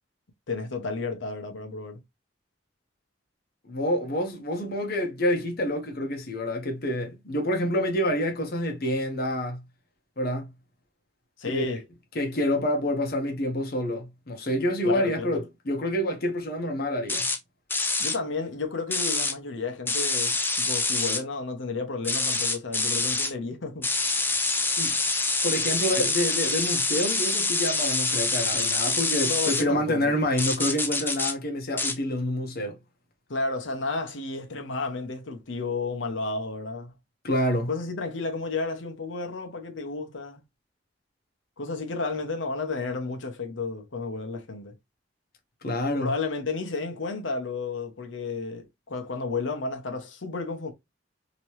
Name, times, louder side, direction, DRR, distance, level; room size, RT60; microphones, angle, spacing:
voice 1, 0.5-2.0 11.4-11.8 14.8-15.4 18.0-23.9 26.0-26.1 29.2-30.2 33.3-36.9 37.7-40.4 41.6-44.7 46.0-50.7, left 3 dB, 85° left, 0.9 m, -32 dB
voice 2, 3.7-9.6 10.2-10.5 11.4-11.8 12.1-17.3 24.8-25.0 25.4-32.8 37.2-37.7 45.6-46.1, left 1 dB, 55° left, 0.9 m, -27 dB
sound 1, 17.1-17.4 17.7-18.2 18.9-19.3 19.9-21.2 22.0-23.3 23.8-29.6 30.4-31.3 31.8-32.0, left 3 dB, 10° left, 0.5 m, -26 dB
3.0 x 2.9 x 3.0 m
head